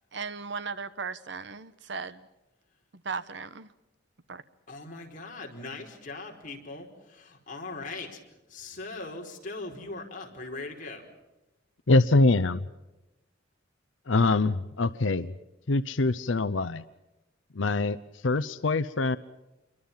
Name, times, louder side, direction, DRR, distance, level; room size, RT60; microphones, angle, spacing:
voice 1, 0.1-2.2 3.0-3.7 4.3-4.4, right 5 dB, 65° right, 14 dB, 1.1 m, -36 dB
voice 2, 4.7-8.2 8.5-11.1, left 3 dB, 45° left, 1 dB, 4.8 m, -40 dB
voice 3, 11.9-12.7 14.1-15.3 15.7-16.8 17.5-18.0 18.2-19.2, left 3 dB, 90° left, 15 dB, 0.8 m, -24 dB
29.0 x 23.5 x 5.7 m, 1.0 s
head